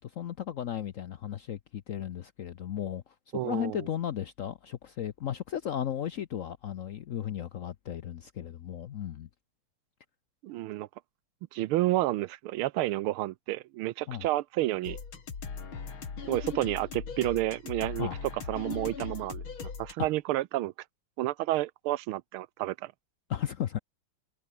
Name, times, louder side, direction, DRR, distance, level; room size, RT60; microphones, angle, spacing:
voice 1, 0.0-9.3 14.1-14.3 18.0-18.2 20.0-20.1 23.3-23.8, left 10 dB, 85° left, 0.7 m, -35 dB
voice 2, 3.3-3.9 10.4-10.9 11.5-15.0 16.3-18.1 18.5-20.7 21.2-22.9, right 16 dB, 90° right, 1.5 m, -30 dB
sound 1, 14.8-19.9, left 5 dB, 70° left, 3.7 m, -39 dB
omnidirectional pair, 2.3 m